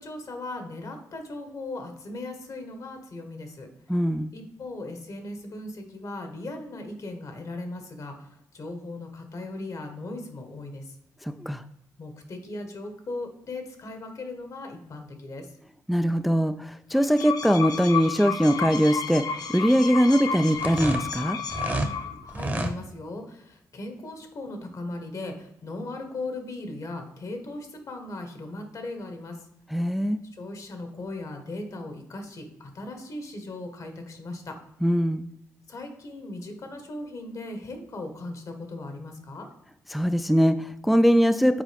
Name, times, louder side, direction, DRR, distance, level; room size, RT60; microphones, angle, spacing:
voice 1, 0.0-3.7 4.3-11.0 12.0-15.5 22.2-29.5 30.3-34.5 35.7-39.5, left 2 dB, 60° left, 5 dB, 1.3 m, -38 dB
voice 2, 3.9-4.3 11.2-11.6 15.9-21.4 29.7-30.2 34.8-35.3 39.9-41.6, equal, ahead, 9 dB, 0.3 m, -22 dB
sound 1, 16.9-22.3, left 6 dB, 75° left, 0.7 m, -32 dB
sound 2, 20.5-21.9 22.3-22.7, right 1 dB, 25° right, 0.9 m, -29 dB
7.4 x 4.5 x 3.4 m, 0.78 s
cardioid pair, 65°, 7 cm